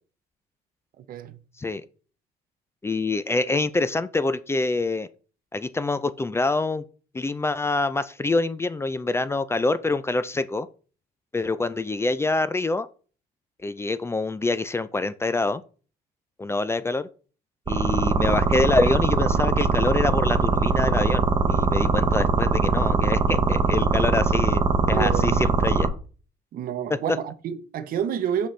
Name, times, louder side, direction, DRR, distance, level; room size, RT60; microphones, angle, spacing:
voice 1, 1.0-1.4 24.8-25.5 26.5-28.5, right 9 dB, 60° right, 0.8 m, -29 dB
voice 2, 2.8-5.1 5.5-6.8 7.1-10.7 11.3-12.9 13.6-15.6 16.4-17.1 17.7-24.6 24.9-25.9, left 3 dB, 15° left, 0.4 m, -25 dB
sound 1, 17.7-25.9, right 4 dB, 25° right, 0.9 m, -21 dB
6.2 x 5.3 x 3.3 m
cardioid pair, 110°, 17 cm